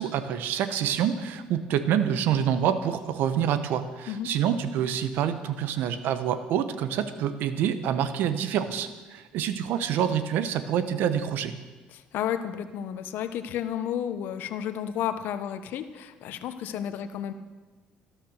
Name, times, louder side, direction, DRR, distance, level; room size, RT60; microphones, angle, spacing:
voice 1, 0.0-11.5, right 9 dB, 70° right, 11 dB, 1.2 m, -27 dB
voice 2, 11.9-17.3, left 9 dB, 70° left, 10 dB, 1.1 m, -32 dB
13.0 x 13.0 x 6.6 m, 1.3 s
supercardioid pair, 70°, 3 cm